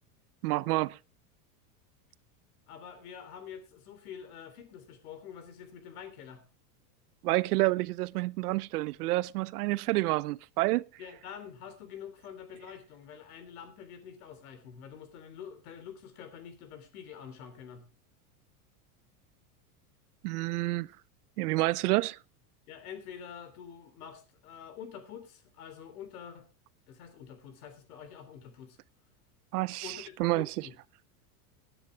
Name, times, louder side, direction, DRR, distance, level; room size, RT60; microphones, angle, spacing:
voice 1, 0.4-1.0 7.2-10.9 20.2-20.9 21.4-22.2 29.5-30.7, right 20 dB, 80° right, 0.7 m, -29 dB
voice 2, 2.7-6.4 11.0-17.8 22.7-26.5 26.9-28.8 29.8-30.7, left 8 dB, 75° left, 3.5 m, -46 dB
18.0 x 10.0 x 3.4 m
supercardioid pair, 145°, 45 cm